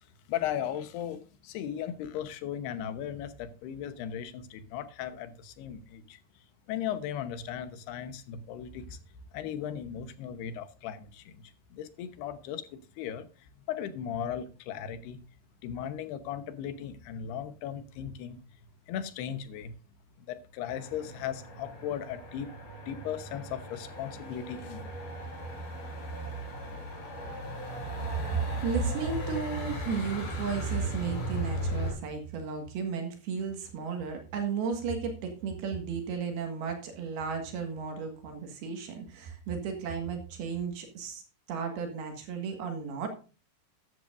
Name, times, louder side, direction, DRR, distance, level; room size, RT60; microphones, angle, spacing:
voice 1, 0.3-6.2 6.7-9.0 9.3-12.7 13.0-13.3 13.7-15.2 15.6-18.4 18.9-19.7 20.3-22.5 22.9-24.9 28.3-28.4, left 9 dB, 80° left, 11 dB, 3.1 m, -37 dB
Motor vehicle (road), 20.7-31.9, right 1 dB, 50° left, 8.6 m, -37 dB
voice 2, 28.3-41.2 41.5-43.1, right 5 dB, 75° right, 4 dB, 3.6 m, -34 dB
14.0 x 11.0 x 2.5 m, 0.35 s
omnidirectional pair, 4.6 m